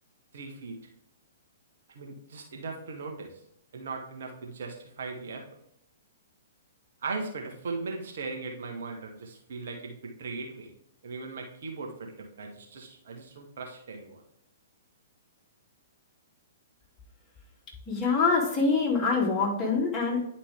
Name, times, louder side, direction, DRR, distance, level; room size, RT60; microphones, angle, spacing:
voice 1, 0.3-0.8 1.9-3.4 3.7-5.4 7.0-10.7 11.0-14.2, right 4 dB, 55° right, 1 dB, 1.4 m, -38 dB
voice 2, 17.9-20.2, left 4 dB, 15° left, -4 dB, 2.9 m, -25 dB
10.0 x 5.0 x 3.6 m, 0.74 s
figure-of-eight pair, 115°, 0 cm